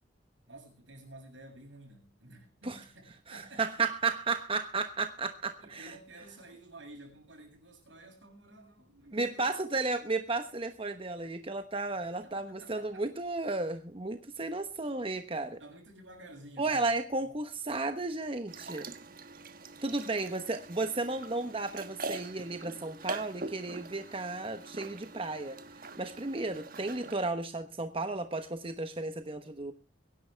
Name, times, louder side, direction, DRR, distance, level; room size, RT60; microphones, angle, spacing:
voice 1, 0.5-3.7 5.6-10.1 11.9-13.0 15.6-17.3 20.1-20.6, right 1 dB, 90° right, 7.6 m, -52 dB
voice 2, 3.3-5.9 9.1-15.6 16.6-18.9 19.8-25.6 26.0-29.7, right 3 dB, 30° right, 1.1 m, -33 dB
sound 1, 18.5-27.2, right 3 dB, 50° right, 1.2 m, -43 dB
23.5 x 11.0 x 3.4 m
head